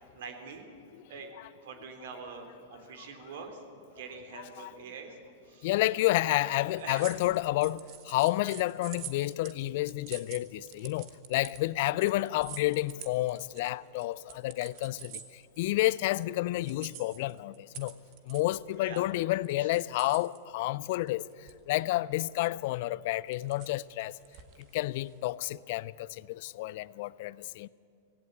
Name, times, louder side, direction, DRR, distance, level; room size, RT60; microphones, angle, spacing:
voice 1, 0.1-0.6 1.1-1.3 1.6-3.6 4.0-5.2 5.5-5.7 6.4-7.0 18.8-19.0 19.6-19.7, right 5 dB, 65° right, 3.5 m, -44 dB
voice 2, 5.6-15.1 15.6-17.9 18.3-21.2 21.7-24.1 24.7-27.7, left 17 dB, 55° left, 0.5 m, -30 dB
sound 1, 6.7-16.2 16.6-20.4 21.1-21.8 22.1-22.3 23.1-25.3, right 12 dB, 45° right, 1.8 m, -48 dB
18.5 x 17.0 x 8.7 m
hypercardioid pair, 100°, 0 cm